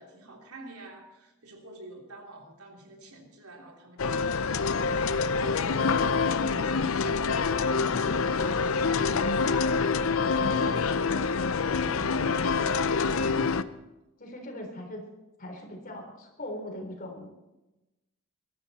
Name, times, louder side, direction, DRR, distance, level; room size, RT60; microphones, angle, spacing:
voice 1, 0.0-7.0 7.3-13.4, right 2 dB, 85° right, 1 dB, 3.4 m, -48 dB
sound 1, 4.0-13.6, left 4 dB, 65° left, 0.6 m, -26 dB
voice 2, 14.2-15.0 15.4-17.3, left 1 dB, 40° left, 2 dB, 3.9 m, -40 dB
22.0 x 13.5 x 4.3 m, 1.0 s
head